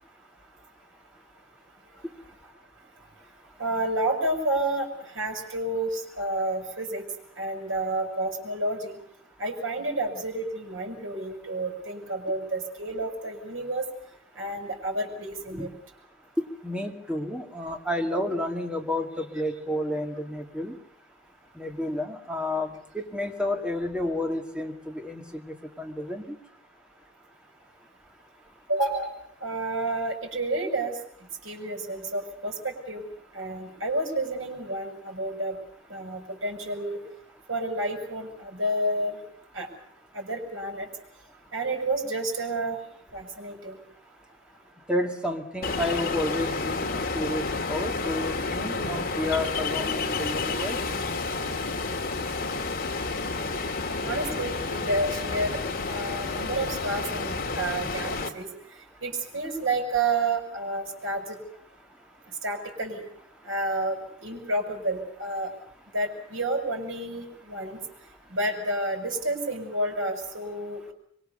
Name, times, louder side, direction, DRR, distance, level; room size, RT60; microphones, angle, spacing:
voice 1, 3.6-4.9 5.1-7.0 7.4-8.9 9.4-13.8 14.4-15.7 28.7-29.1 29.4-30.9 31.4-33.1 33.3-35.6 35.9-37.0 37.5-39.2 39.5-39.7 40.1-40.9 41.5-42.8 43.1-43.8 54.0-58.5 59.0-61.4 62.4-63.0 63.4-65.5 65.9-67.8 68.3-70.9, right 2 dB, 75° right, 3 dB, 6.7 m, -30 dB
voice 2, 16.4-20.8 21.6-26.4 44.9-46.9 47.1-50.8, left 1 dB, 5° right, 3 dB, 2.2 m, -31 dB
Ocean, 45.6-58.3, left 3 dB, 50° left, 2.3 m, -30 dB
24.5 x 23.5 x 6.8 m, 0.65 s
head